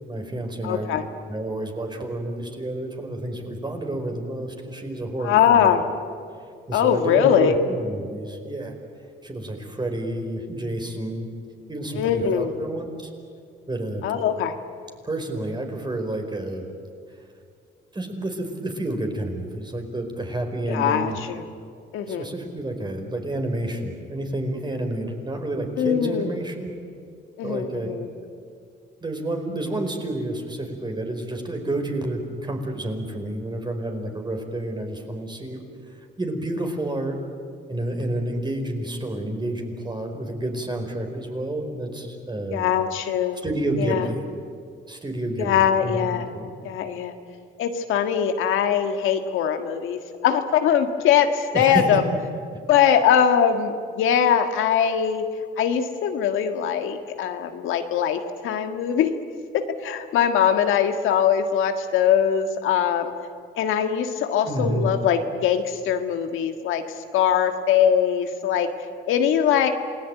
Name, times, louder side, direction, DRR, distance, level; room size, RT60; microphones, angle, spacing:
voice 1, 0.1-1.0 1.3-5.8 6.7-8.7 9.2-11.3 11.7-13.1 13.7-14.0 15.0-16.6 17.9-21.2 22.1-26.7 27.4-28.0 29.0-35.6 36.2-37.2 37.7-42.6 43.4-44.2 44.9-46.5 51.5-51.8 52.5-52.6 64.4-64.9, right 1 dB, 20° right, 4 dB, 4.8 m, -29 dB
voice 2, 0.6-1.0 5.2-5.8 6.7-7.5 11.9-12.5 14.0-14.5 20.7-21.4 21.9-22.3 25.8-26.3 27.4-28.1 42.5-43.4 43.8-44.1 45.4-46.3 46.6-47.1 47.6-52.0 52.7-55.2 55.6-59.1 59.5-63.1 63.6-66.8 67.1-68.7 69.1-69.7, left 8 dB, 90° left, 6 dB, 1.6 m, -21 dB
28.0 x 19.0 x 9.3 m, 2.3 s
cardioid pair, 90°, 20 cm